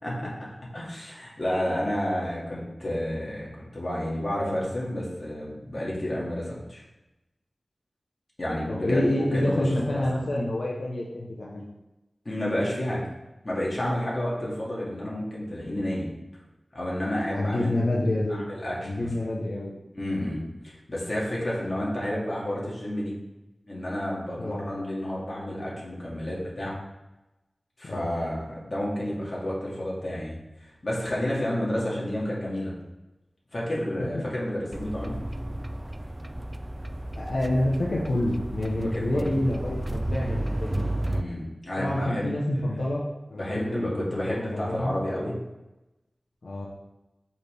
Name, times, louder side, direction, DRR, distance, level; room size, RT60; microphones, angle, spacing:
voice 1, 0.0-0.3 0.7-6.8 8.4-9.0 9.3-10.3 12.2-13.0 13.4-16.1 16.7-17.7 18.3-19.1 19.9-23.1 23.7-26.8 27.8-30.4 30.6-32.7 33.5-35.2 38.9-39.4 41.0-42.8 43.3-45.4, left 1 dB, 45° left, -5 dB, 2.4 m, -30 dB
voice 2, 8.7-11.6 17.3-18.4 18.8-19.7 24.4-24.6 27.8-28.1 34.0-34.2 37.1-40.9 41.8-44.9 46.4-46.7, left 1 dB, 85° left, -4 dB, 1.0 m, -28 dB
sound 1, 34.7-41.2, right 1 dB, 25° right, 0.3 m, -32 dB
6.4 x 5.7 x 3.5 m, 1.0 s
wide cardioid pair, 80°, 0 cm